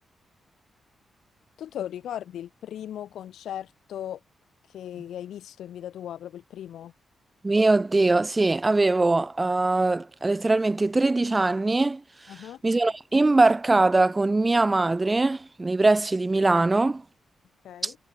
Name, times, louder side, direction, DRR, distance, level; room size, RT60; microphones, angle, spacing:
voice 1, 1.6-4.2 4.7-6.9 12.3-12.6 17.6-18.0, left 10 dB, 80° left, 6.7 m, -37 dB
voice 2, 7.4-12.0 12.3-17.0 17.8-17.9, right 2 dB, 30° right, 6.6 m, -22 dB
supercardioid pair, 50°, 0 cm